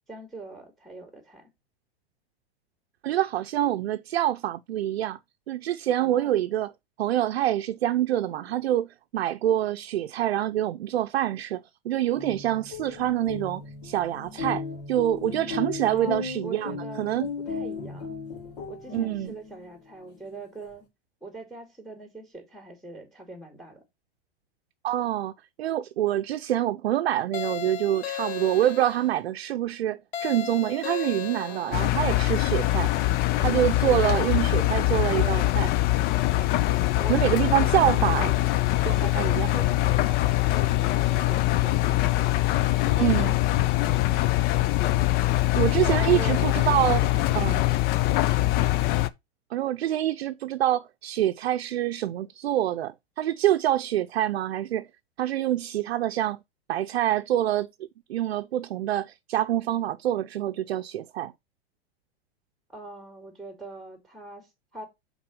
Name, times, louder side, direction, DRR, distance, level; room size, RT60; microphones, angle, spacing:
voice 1, 0.1-1.5 6.0-6.4 15.9-18.2 18.7-20.9 21.2-23.8 31.5-32.0 33.8-34.5 35.1-35.5 37.0-38.4 39.0-42.1 45.8-46.8 47.6-47.8 48.2-48.6 62.7-64.8, right 3 dB, ahead, 2.5 m, -42 dB
voice 2, 3.0-5.2 5.5-6.7 7.0-17.3 18.9-19.3 24.8-25.3 25.6-32.9 33.4-35.7 37.1-38.3 38.9-39.5 43.0-43.4 45.5-47.0 47.3-47.6 49.5-54.9 55.2-56.4 56.7-57.7 58.1-61.3, right 12 dB, 85° right, 0.6 m, -26 dB
sound 1, 12.0-19.6, left 4 dB, 60° left, 2.8 m, -36 dB
sound 2, 27.3-29.1 30.1-31.9, left 10 dB, 80° left, 1.2 m, -35 dB
Engine, 31.7-49.1, left 16 dB, 30° left, 0.5 m, -23 dB
6.0 x 4.1 x 4.9 m
hypercardioid pair, 125°, 30 cm